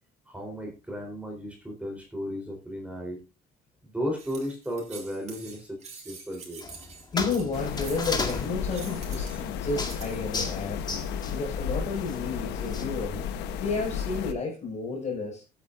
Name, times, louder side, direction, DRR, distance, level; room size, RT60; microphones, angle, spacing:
voice 1, 0.3-3.2 3.8-6.6, equal, 10° right, 1 dB, 3.9 m, -35 dB
sound 1, 4.2-10.2, right 5 dB, 40° right, 3.7 m, -46 dB
sound 2, 6.6-12.8, left 3 dB, 25° left, 1.9 m, -36 dB
voice 2, 7.1-10.9 11.3-13.3 13.6-15.4, left 4 dB, 40° left, 1 dB, 5.9 m, -31 dB
sound 3, 7.5-14.3, left 7 dB, 90° left, 1.1 m, -33 dB
16.0 x 9.0 x 2.6 m, 0.28 s
cardioid pair, 110°, 17 cm